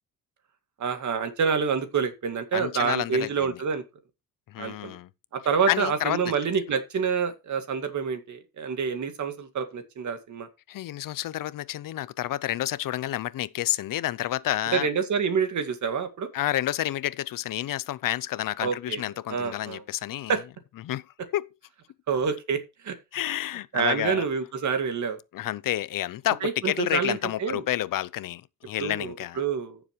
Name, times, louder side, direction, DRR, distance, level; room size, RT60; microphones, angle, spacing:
voice 1, 0.8-3.8 4.6-5.0 5.3-10.5 14.7-16.3 18.6-19.0 19.3-19.8 20.3-20.4 22.1-23.0 23.7-25.2 26.4-27.6 28.8-29.8, right 6 dB, 55° right, 2.1 m, -27 dB
voice 2, 2.5-3.5 4.5-5.1 5.7-6.2 10.7-14.9 16.3-20.4 20.8-21.0 21.3-21.5 23.1-24.2 25.3-29.4, left 14 dB, 65° left, 0.6 m, -29 dB
15.0 x 7.2 x 3.1 m
cardioid pair, 145°, 35 cm